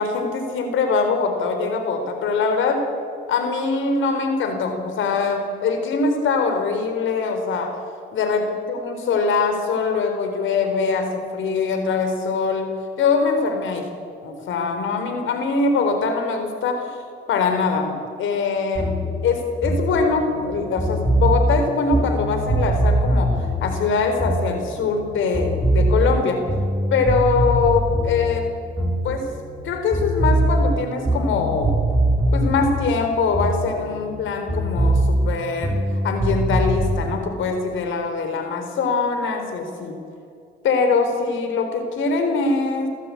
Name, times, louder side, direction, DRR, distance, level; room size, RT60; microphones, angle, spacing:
voice 1, 0.0-2.8 3.3-7.8 8.1-13.9 14.2-17.0 17.3-26.4 26.9-28.5 29.0-29.3 29.6-31.7 32.3-35.8 36.0-40.0 40.6-42.9, left 4 dB, 75° left, 6 dB, 4.4 m, -23 dB
sound 1, 18.8-25.1 25.3-29.6 29.9-34.2 34.5-37.0, right 1 dB, 10° right, 3.7 m, -22 dB
27.5 x 14.5 x 8.7 m, 2.5 s
cardioid pair, 90°, 20 cm